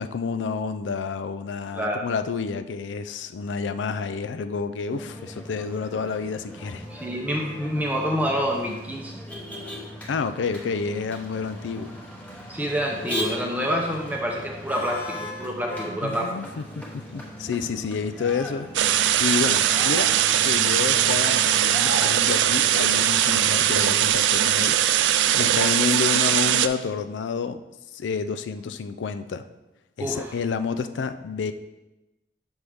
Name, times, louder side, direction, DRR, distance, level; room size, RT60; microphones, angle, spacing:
voice 1, 0.0-6.8 10.1-11.9 16.0-16.8 17.1-18.7 19.2-20.1 20.4-27.6 27.9-29.4 30.0-31.5, left 5 dB, 85° left, 10 dB, 0.4 m, -29 dB
Motor vehicle (road), 4.9-24.1, equal, 10° left, 1.0 m, -38 dB
voice 2, 6.9-9.2 12.5-16.4 30.0-30.3, equal, 10° right, 0 dB, 0.6 m, -27 dB
sound 1, 18.7-26.7, right 11 dB, 80° right, 0.3 m, -20 dB
6.1 x 5.4 x 3.4 m, 1.0 s
head